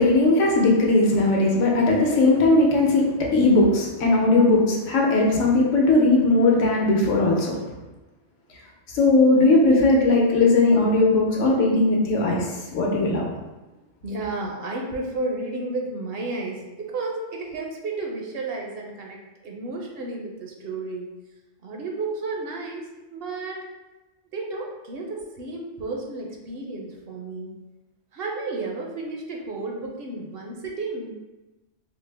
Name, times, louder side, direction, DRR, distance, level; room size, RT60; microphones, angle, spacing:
voice 1, 0.0-7.6 8.9-13.3, left 2 dB, 80° left, -2 dB, 1.1 m, -19 dB
voice 2, 14.0-19.2 19.4-21.1 21.6-23.6 24.3-27.6 28.1-31.1, right 3 dB, 60° right, 0 dB, 0.7 m, -32 dB
4.3 x 2.0 x 3.3 m, 1.1 s
omnidirectional pair, 1.3 m